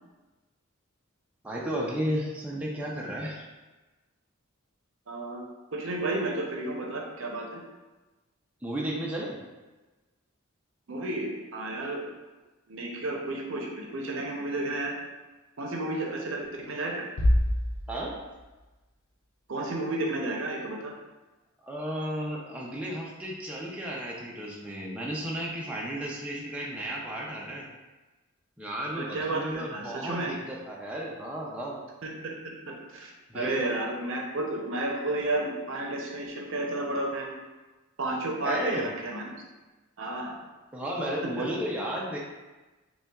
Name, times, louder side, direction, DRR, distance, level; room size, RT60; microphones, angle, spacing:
voice 1, 1.4-3.4 8.6-9.4 17.9-18.1 21.6-27.7 28.6-31.8 33.3-33.5 38.4-38.8 40.7-42.2, equal, 5° right, -4 dB, 0.4 m, -33 dB
voice 2, 5.1-5.5 5.7-7.6 10.9-12.1 12.7-14.9 15.6-17.1 19.5-20.9 29.0-30.3 32.0-32.3 32.7-37.4 38.0-39.3 40.0-40.3 41.4-41.5, right 2 dB, 65° right, 0 dB, 0.6 m, -32 dB
sound 1, 17.2-18.6, equal, 60° left, 0.5 m, -26 dB
5.4 x 2.2 x 2.3 m, 1.2 s
head